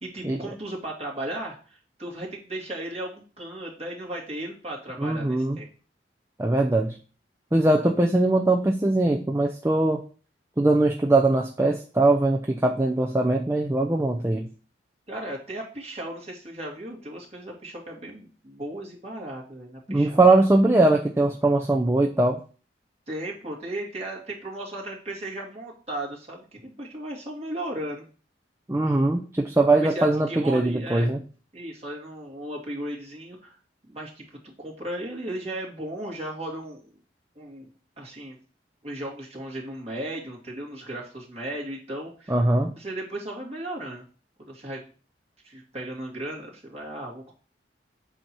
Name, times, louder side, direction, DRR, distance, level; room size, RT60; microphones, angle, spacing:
voice 1, 0.0-5.7 15.1-20.3 23.1-28.0 29.8-31.1 31.5-33.6 33.9-36.8 37.4-37.7 38.0-38.4 38.8-42.4 42.7-44.0 44.4-44.8 45.4-47.3, right 1 dB, 35° right, -3 dB, 2.2 m, -36 dB
voice 2, 5.0-5.6 6.4-7.0 7.5-10.0 10.6-14.5 19.9-22.4 28.7-31.2 42.3-42.7, right 2 dB, 15° right, 2 dB, 0.5 m, -21 dB
8.0 x 2.9 x 6.1 m, 0.38 s
head